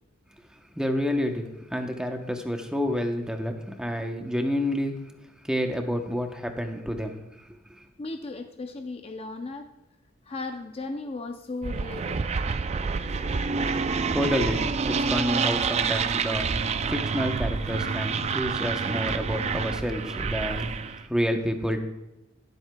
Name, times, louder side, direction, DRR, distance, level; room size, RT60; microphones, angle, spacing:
voice 1, 0.8-1.4 1.7-4.9 5.4-7.2 7.7-7.8 13.9-21.8, equal, 5° right, 4 dB, 0.8 m, -29 dB
voice 2, 8.0-9.7 10.3-12.3, left 3 dB, 30° left, 6 dB, 0.5 m, -36 dB
sound 1, 11.6-21.0, right 5 dB, 30° right, 0.3 m, -28 dB
19.5 x 7.9 x 2.2 m, 0.94 s
head